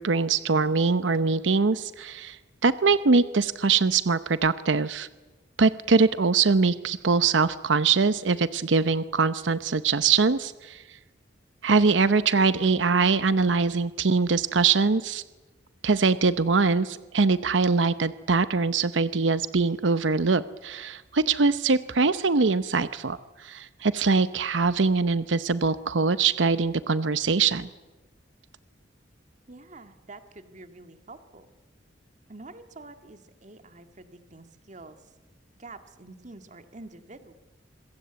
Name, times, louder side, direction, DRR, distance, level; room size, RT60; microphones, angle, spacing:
voice 1, 0.0-5.1 5.6-10.8 11.6-15.2 15.8-27.7, right 4 dB, 90° right, 13 dB, 0.8 m, -23 dB
voice 2, 29.5-31.5 32.3-35.0 35.6-37.3, right 2 dB, 40° right, 8 dB, 2.0 m, -47 dB
26.5 x 22.0 x 8.1 m, 1.2 s
head